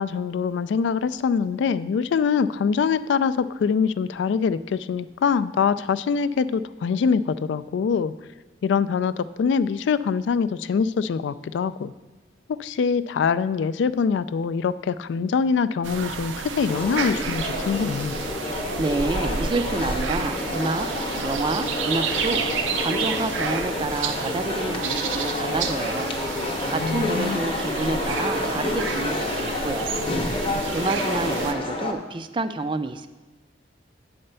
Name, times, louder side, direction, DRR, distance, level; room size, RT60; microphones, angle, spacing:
voice 1, 0.0-8.1 8.6-11.9 12.6-18.2 26.8-27.4, left 6 dB, 65° left, 15 dB, 0.3 m, -24 dB
sound 1, 15.8-31.5, right 5 dB, 85° right, 0.6 m, -31 dB
sound 2, 16.7-31.9, left 2 dB, 30° left, 0.8 m, -29 dB
voice 2, 18.8-20.9 21.2-26.1 26.7-30.0 30.7-33.1, right 3 dB, 25° right, 11 dB, 0.4 m, -28 dB
8.6 x 4.3 x 6.7 m, 1.2 s
head